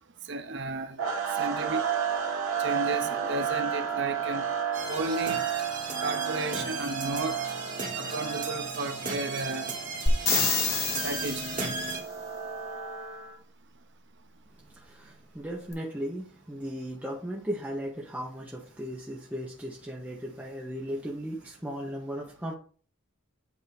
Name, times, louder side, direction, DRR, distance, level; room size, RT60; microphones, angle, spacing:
voice 1, 0.3-1.0 1.4-1.8 2.6-4.4 4.9-5.4 6.0-7.4 7.9-9.7 11.0-11.6, right 2 dB, 55° right, 0.7 m, -33 dB
sound 1, 1.0-13.3, right 8 dB, 85° right, 1.4 m, -33 dB
sound 2, 4.7-12.0, right 3 dB, 35° right, 2.0 m, -36 dB
sound 3, 10.1-11.9 15.7-15.8, left 4 dB, 45° left, 1.3 m, -27 dB
voice 2, 14.7-22.6, equal, 5° right, 1.0 m, -36 dB
8.3 x 2.9 x 5.2 m
head